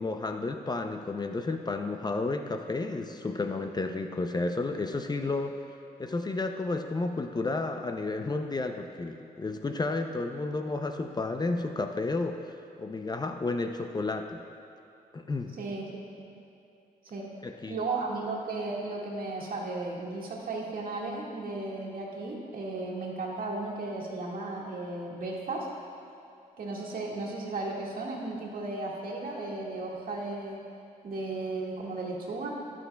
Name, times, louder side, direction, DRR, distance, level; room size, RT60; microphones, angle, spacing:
voice 1, 0.0-5.6 6.0-14.4 15.1-15.5 17.4-17.8, left 3 dB, 25° left, 6 dB, 0.5 m, -32 dB
voice 2, 15.6-16.3 17.0-17.3 17.7-25.7 26.6-30.6 31.0-32.5, right 2 dB, 65° right, -3 dB, 1.9 m, -35 dB
17.5 x 6.2 x 2.3 m, 2.8 s
cardioid pair, 70°, 16 cm